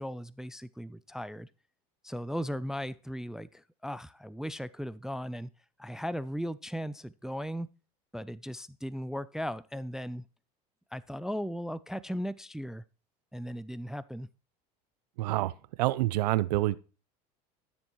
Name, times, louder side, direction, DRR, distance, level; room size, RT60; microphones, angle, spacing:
voice 1, 0.0-1.5 2.0-5.5 5.8-7.7 8.1-10.2 10.9-12.8 13.3-14.3, equal, 5° right, 0.3 m, -37 dB
voice 2, 15.2-16.8, right 17 dB, 85° right, 0.5 m, -27 dB
13.0 x 7.1 x 3.0 m
hypercardioid pair, 90°, 20 cm